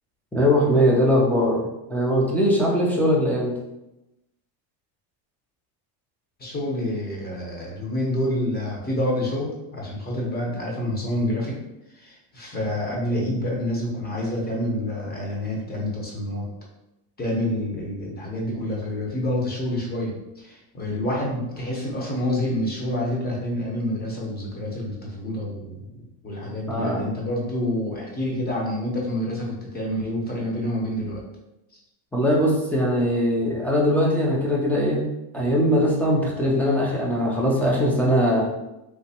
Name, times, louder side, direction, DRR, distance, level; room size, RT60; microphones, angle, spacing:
voice 1, 0.3-1.6 1.9-3.6 26.7-27.0 32.1-35.0 35.3-38.4, equal, 5° left, -4 dB, 0.4 m, -21 dB
voice 2, 6.4-11.6 11.9-16.4 17.2-25.9 26.2-31.2, left 1 dB, 20° left, -3 dB, 0.9 m, -28 dB
3.4 x 2.9 x 2.8 m, 0.92 s
cardioid pair, 140°, 49 cm